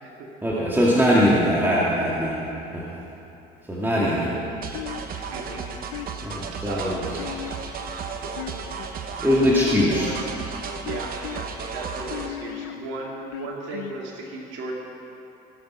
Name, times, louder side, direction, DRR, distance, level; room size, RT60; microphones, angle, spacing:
voice 1, 0.4-2.4 2.7-3.0 3.7-4.3 6.2-7.0 9.2-10.1, equal, 10° right, -6 dB, 2.1 m, -21 dB
sound 1, 4.6-12.3, right 5 dB, 50° right, 1.1 m, -34 dB
sound 2, 4.7-5.3 5.9-6.5 7.2-7.9 8.3-9.0 9.6-10.3 10.9-11.4 12.1-12.7 13.3-14.0, left 12 dB, 85° left, 0.6 m, -36 dB
voice 2, 5.3-5.7 6.6-7.1 9.8-10.3 10.8-14.7, right 2 dB, 75° right, -2 dB, 2.1 m, -35 dB
17.0 x 7.4 x 6.1 m, 2.9 s
supercardioid pair, 80°, 19 cm